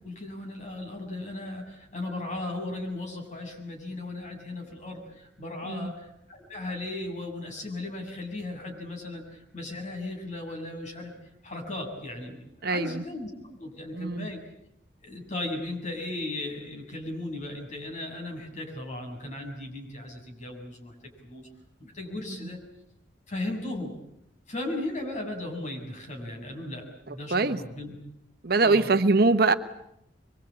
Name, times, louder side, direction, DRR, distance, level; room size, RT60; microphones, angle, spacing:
voice 1, 0.0-11.2 11.4-14.4 15.0-21.5 21.8-22.6 23.3-23.9 24.5-27.9 28.6-28.9, left 2 dB, 40° left, 2 dB, 7.0 m, -36 dB
voice 2, 12.6-13.0 13.9-14.3 27.3-27.6 28.4-29.5, right 3 dB, 60° right, 10 dB, 1.1 m, -23 dB
25.0 x 22.5 x 8.7 m, 0.79 s
head